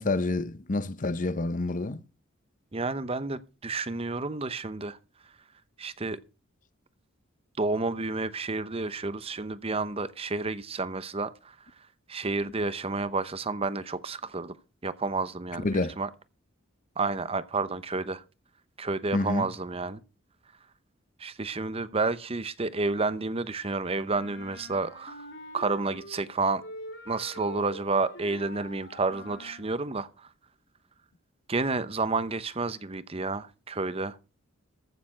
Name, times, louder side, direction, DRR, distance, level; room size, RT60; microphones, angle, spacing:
voice 1, 0.0-2.0 15.6-16.0 19.1-19.4, left 2 dB, 40° left, 0.7 m, -28 dB
voice 2, 2.7-5.0 5.8-6.2 7.6-11.5 12.1-14.5 14.8-16.1 17.0-18.2 18.8-20.0 21.2-25.3 25.5-26.6 27.1-30.3 31.5-34.2, right 3 dB, 30° right, 0.8 m, -30 dB
Wind instrument woodwind instrument, 24.1-26.3 26.6-29.7, left 1 dB, 60° left, 3.6 m, -44 dB
14.5 x 6.8 x 6.2 m
head